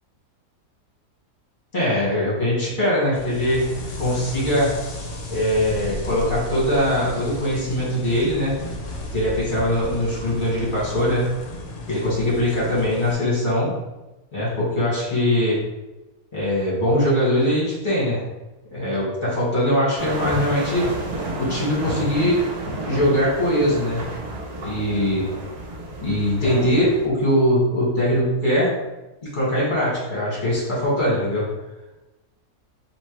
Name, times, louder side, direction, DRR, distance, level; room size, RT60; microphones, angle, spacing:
voice 1, 1.7-4.8 5.3-8.6 9.1-11.3 11.9-13.8 14.3-15.6 16.3-18.2 18.7-20.9 21.4-22.4 22.8-24.1 24.6-25.3 26.0-28.8 29.2-31.5, left 1 dB, 30° left, -7 dB, 1.7 m, -21 dB
sound 1, 3.1-13.1, left 1 dB, 55° left, 1.1 m, -34 dB
sound 2, 19.9-27.1, right 1 dB, 75° right, 1.4 m, -31 dB
4.3 x 3.1 x 3.1 m, 1.0 s
omnidirectional pair, 1.7 m